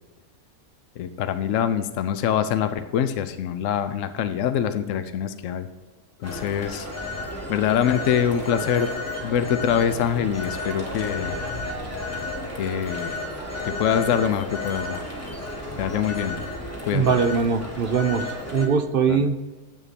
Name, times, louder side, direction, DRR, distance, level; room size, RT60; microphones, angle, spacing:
voice 1, 1.0-5.7 6.2-6.9 7.5-8.9 9.2-11.3 12.6-13.1 13.7-15.0 15.8-16.4 16.9-17.1 19.1-19.2, left 9 dB, 65° left, 11 dB, 0.9 m, -24 dB
Telephone, 6.2-18.7, left 2 dB, 10° left, 1.6 m, -32 dB
voice 2, 16.9-18.2 18.5-19.4, right 5 dB, 45° right, 7 dB, 0.9 m, -21 dB
9.8 x 8.4 x 4.2 m, 1.2 s
omnidirectional pair, 1.6 m